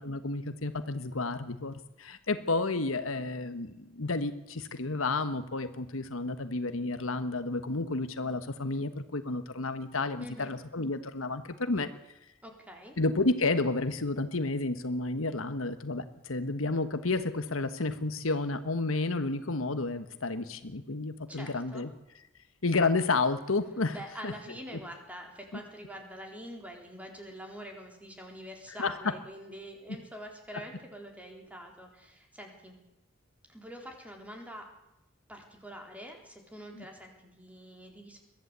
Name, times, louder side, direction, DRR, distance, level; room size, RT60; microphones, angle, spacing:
voice 1, 0.0-11.9 13.0-21.9 22.6-24.0 24.2-24.3 28.8-28.9 36.8-36.9, left 3 dB, 80° left, 10 dB, 1.4 m, -31 dB
voice 2, 10.2-10.6 12.4-13.0 21.3-21.8 23.9-32.8 33.5-34.7 35.3-38.2, equal, 5° right, 2 dB, 4.0 m, -45 dB
22.0 x 14.5 x 8.2 m, 0.90 s
head